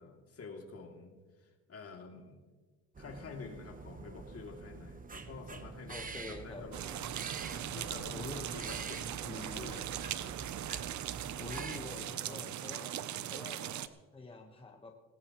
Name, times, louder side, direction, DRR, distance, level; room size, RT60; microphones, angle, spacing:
voice 1, 0.0-2.4 3.0-7.1 7.5-10.0, left 4 dB, 50° left, 2 dB, 2.8 m, -49 dB
sound 1, 2.9-11.8, right 4 dB, 25° right, 1.1 m, -46 dB
voice 2, 5.9-6.6 8.1-8.5 9.3-9.8 11.4-12.9 13.3-14.9, left 2 dB, 20° left, 2 dB, 1.3 m, -46 dB
sound 2, 6.7-13.9, right 11 dB, 70° right, 0.8 m, -40 dB
19.0 x 18.0 x 3.1 m, 1.4 s
cardioid pair, 90°, 30 cm